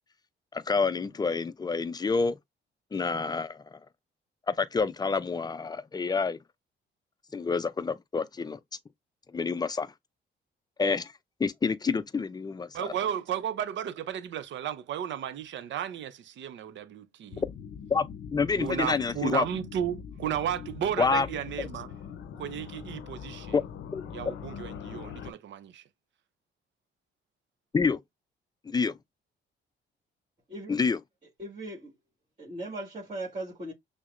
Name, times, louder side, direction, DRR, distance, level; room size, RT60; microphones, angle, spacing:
voice 1, 0.5-2.4 2.9-3.8 4.5-6.4 7.3-8.6 9.3-9.9 10.8-11.1 11.4-12.9 17.9-19.5 21.0-21.3 23.5-23.6 23.9-24.0 27.7-28.0 28.7-28.9 30.7-31.0, left 4 dB, 20° left, 0.4 m, -28 dB
voice 2, 12.7-17.4 18.6-21.9 22.4-23.6 24.1-25.8, right 10 dB, 70° right, 0.6 m, -34 dB
sound 1, 17.3-25.3, left 7 dB, 70° left, 0.6 m, -42 dB
voice 3, 31.4-32.0 32.4-33.7, right 1 dB, 30° right, 1.9 m, -38 dB
6.1 x 2.1 x 2.5 m
cardioid pair, 90°, 20 cm